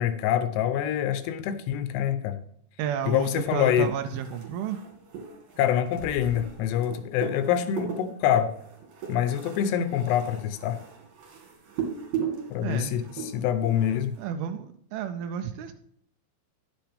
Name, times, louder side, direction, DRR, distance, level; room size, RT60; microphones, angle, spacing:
voice 1, 0.0-2.4 3.1-3.9 5.6-8.5 9.1-10.8 12.5-14.1, left 10 dB, 80° left, 11 dB, 2.7 m, -25 dB
voice 2, 2.8-4.9 12.6-13.0 14.2-15.7, right 8 dB, 90° right, 7 dB, 2.2 m, -31 dB
sound 1, 3.0-14.2, right 6 dB, 50° right, 2.9 m, -38 dB
11.0 x 7.9 x 3.4 m, 0.67 s
omnidirectional pair, 5.0 m